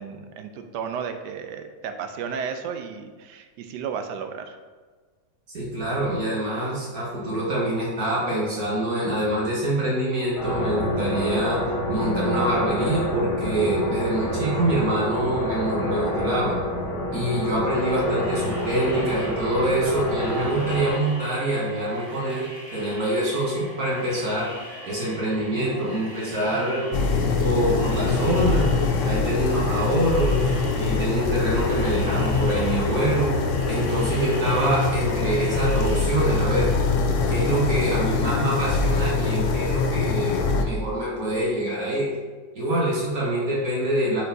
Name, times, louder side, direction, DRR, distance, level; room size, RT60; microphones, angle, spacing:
voice 1, 0.0-4.6, right 6 dB, 80° right, 7 dB, 1.2 m, -33 dB
voice 2, 5.5-16.6 17.1-24.5 24.8-26.8 27.4-28.7 29.0-33.3 33.7-36.7 37.3-42.1 42.6-44.2, right 1 dB, 60° right, -6 dB, 1.9 m, -25 dB
sound 1, 10.3-20.9, equal, 30° left, 1.6 m, -27 dB
sound 2, 17.7-36.0, equal, 30° right, 1.6 m, -42 dB
sound 3, 26.9-40.7, left 4 dB, 65° left, 0.8 m, -23 dB
8.6 x 4.4 x 2.7 m, 1.4 s
omnidirectional pair, 1.8 m